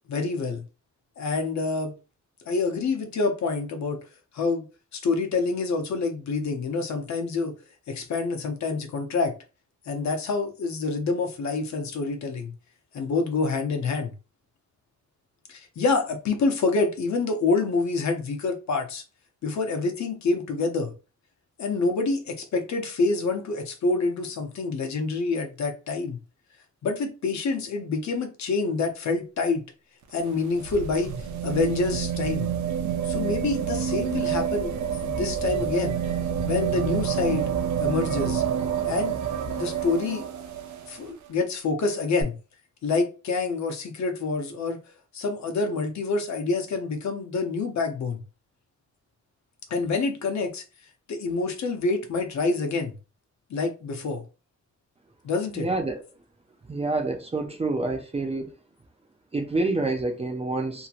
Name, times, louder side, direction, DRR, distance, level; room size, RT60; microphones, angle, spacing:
voice 1, 0.1-0.6 1.2-1.9 2.5-4.0 4.3-4.7 4.9-7.6 7.9-9.3 9.9-12.5 12.9-14.1 15.5-19.0 19.4-20.9 21.6-26.2 26.8-29.6 30.1-31.1 31.4-32.6 33.0-34.7 35.0-36.0 36.4-37.5 37.8-38.4 38.8-39.2 39.5-40.3 40.9-42.4 42.8-44.8 45.1-48.2 49.7-50.6 51.1-52.9 53.5-54.2 55.2-55.7, left 3 dB, 65° left, 0.8 m, -27 dB
sound 1, 30.0-41.0 42.2-42.3, right 8 dB, 75° right, 0.7 m, -28 dB
voice 2, 55.6-56.0 56.7-58.5 59.3-60.9, right 2 dB, 20° right, 0.4 m, -27 dB
2.8 x 2.8 x 2.4 m
wide cardioid pair, 170°, 30 cm